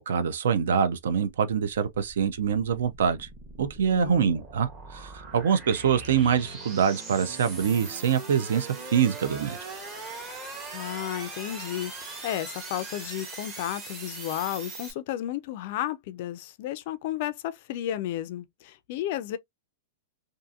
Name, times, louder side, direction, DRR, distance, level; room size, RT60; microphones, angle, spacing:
voice 1, 0.0-3.3 3.6-9.6, right 7 dB, 80° right, 0.5 m, -25 dB
sound 1, 1.7-14.9, right 3 dB, 20° right, 0.8 m, -41 dB
voice 2, 3.9-4.3 10.7-19.4, left 12 dB, 40° left, 0.3 m, -33 dB
2.7 x 2.5 x 2.4 m
supercardioid pair, 175°, 0 cm